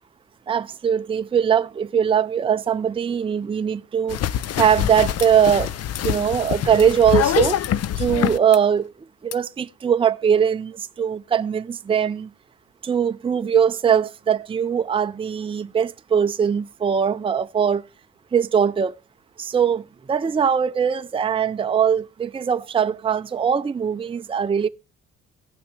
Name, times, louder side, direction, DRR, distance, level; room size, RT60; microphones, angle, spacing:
voice 1, 0.5-4.2 4.6-5.7 6.0-7.6 8.0-8.9 9.2-12.3 12.8-17.8 18.3-18.9 19.4-19.8 20.1-24.7, right 8 dB, 20° right, 0.5 m, -21 dB
sound 1, 4.1-8.6 9.3-9.4, left 11 dB, 55° left, 0.5 m, -24 dB
17.0 x 5.8 x 3.3 m
cardioid pair, 90°, 30 cm